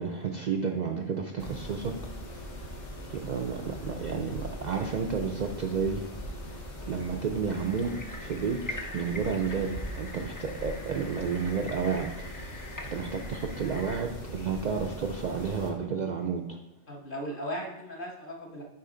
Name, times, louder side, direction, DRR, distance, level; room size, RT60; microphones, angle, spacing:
voice 1, 0.0-2.7 3.0-6.1 6.4-12.1 12.5-16.6, right 5 dB, 60° right, 3 dB, 0.5 m, -32 dB
Mechanisms, 1.4-15.7, equal, 75° left, 1.4 m, -41 dB
sound 1, 7.5-14.0, left 2 dB, 30° left, 0.4 m, -44 dB
voice 2, 16.9-18.6, equal, 50° left, -1 dB, 1.3 m, -37 dB
6.7 x 5.0 x 3.8 m, 0.90 s
omnidirectional pair, 1.2 m